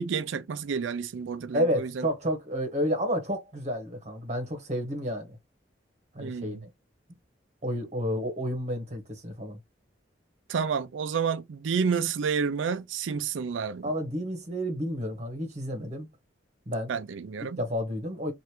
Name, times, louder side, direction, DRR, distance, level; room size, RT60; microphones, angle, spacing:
voice 1, 0.0-2.1 6.2-6.6 10.5-13.9 16.9-17.6, right 6 dB, 85° right, 0.4 m, -30 dB
voice 2, 1.5-5.4 6.1-6.7 7.6-9.6 13.8-16.1 16.7-16.9 17.4-18.3, equal, 35° right, 1.1 m, -30 dB
3.2 x 2.5 x 2.9 m
head